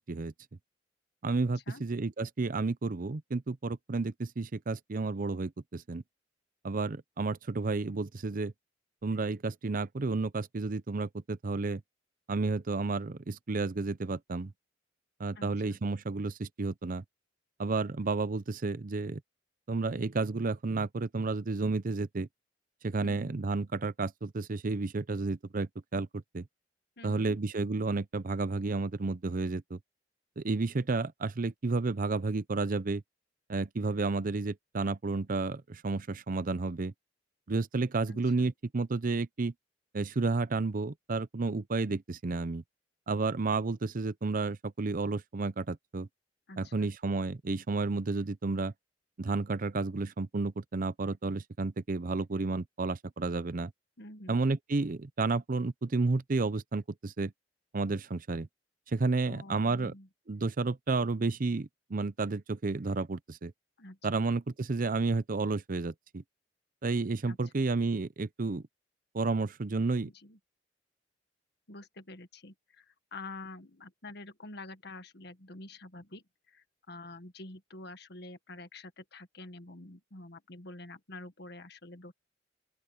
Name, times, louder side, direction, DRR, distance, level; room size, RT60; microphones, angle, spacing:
voice 1, 1.2-6.0 6.6-8.5 9.0-11.8 12.3-14.5 15.2-17.0 17.6-19.2 19.7-22.3 22.8-26.4 27.0-29.8 30.4-33.0 33.5-36.9 37.5-39.5 39.9-42.6 43.1-46.1 46.6-48.7 49.2-53.7 54.3-57.3 57.7-58.5 58.9-59.9 60.3-63.5 64.0-66.2 66.8-68.6 69.1-70.1, right 3 dB, 50° right, 0.6 m, -31 dB
voice 2, 23.0-23.4 27.0-27.4 38.1-38.5 46.5-46.9 54.0-54.4 59.3-60.1 63.8-64.2 67.2-67.6 70.0-70.4 71.7-72.8 73.1-82.1, left 2 dB, 65° left, 1.7 m, -47 dB
open air
head